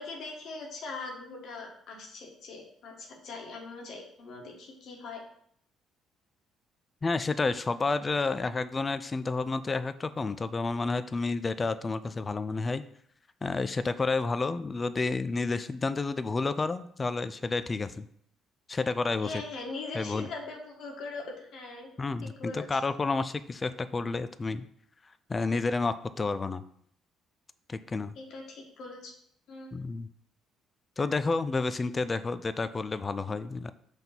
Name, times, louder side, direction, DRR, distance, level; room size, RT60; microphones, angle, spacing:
voice 1, 0.0-5.2 19.2-21.9 22.2-22.7 28.1-29.1 29.5-29.8, left 3 dB, 65° left, 0 dB, 1.7 m, -41 dB
voice 2, 7.0-12.8 13.4-18.1 18.7-19.3 19.9-20.3 22.0-24.7 25.3-26.6 27.7-28.1 29.7-30.1 31.0-33.7, left 3 dB, 30° left, 13 dB, 0.5 m, -30 dB
5.8 x 3.5 x 5.9 m, 0.67 s
hypercardioid pair, 60°, 0 cm